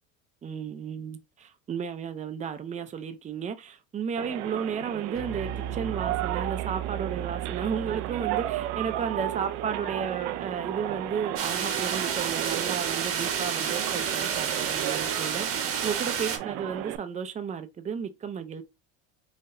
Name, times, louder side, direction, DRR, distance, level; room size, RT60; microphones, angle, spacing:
voice 1, 0.4-18.6, right 7 dB, 20° right, 0.5 m, -33 dB
sound 1, 4.2-17.0, right 14 dB, 75° right, 0.5 m, -34 dB
Bass guitar, 5.1-11.6, right 10 dB, ahead, 1.0 m, -38 dB
sound 2, 11.4-16.4, right 7 dB, 40° right, 1.0 m, -30 dB
3.8 x 2.6 x 2.6 m
supercardioid pair, 105°, 34 cm